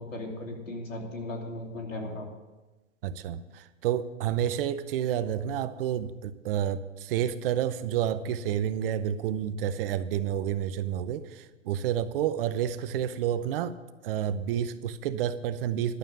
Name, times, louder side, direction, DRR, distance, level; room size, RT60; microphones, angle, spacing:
voice 1, 0.0-2.3, left 1 dB, 80° left, 3.0 m, -37 dB
voice 2, 3.0-13.8 14.0-16.0, right 10 dB, 45° right, 0.7 m, -29 dB
11.5 x 7.1 x 7.9 m
hypercardioid pair, 115°, 38 cm